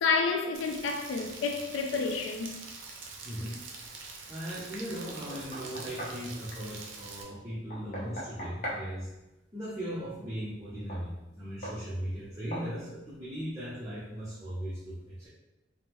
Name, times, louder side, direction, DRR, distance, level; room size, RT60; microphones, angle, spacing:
voice 1, 0.0-2.6, left 4 dB, 75° left, 0.3 m, -29 dB
Rain, 0.5-7.2, right 4 dB, 75° right, 0.5 m, -45 dB
voice 2, 3.2-3.6 4.3-9.1 9.5-15.3, equal, 15° right, 0.6 m, -38 dB
Knock, 5.1-6.2 7.7-8.9 10.9-11.1 11.6-11.8 12.5-12.7, equal, 40° left, 0.7 m, -39 dB
3.5 x 2.0 x 2.9 m
head